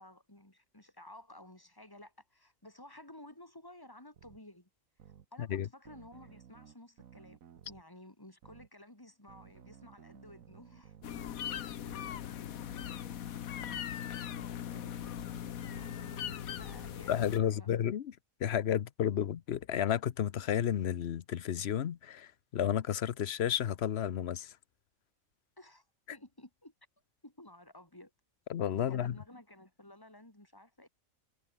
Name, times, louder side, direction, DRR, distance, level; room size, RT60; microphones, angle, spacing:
voice 1, 0.0-4.7 5.3-7.4 7.7-11.0 15.7-17.7 25.6-25.9 26.1-26.7 27.2-28.1 28.7-30.9, left 1 dB, 15° left, 3.6 m, -54 dB
sound 1, 4.1-4.4 5.0-5.3 5.9-7.8 8.4-8.7 9.3-11.3 11.8-12.1 12.7-13.0 13.6-13.8 14.3-17.0, right 9 dB, 80° right, 1.5 m, -56 dB
voice 2, 5.4-5.7 17.1-24.6 28.5-29.2, left 9 dB, 55° left, 0.9 m, -32 dB
sound 2, 11.0-17.4, left 10 dB, 90° left, 1.4 m, -40 dB
omnidirectional pair, 1.4 m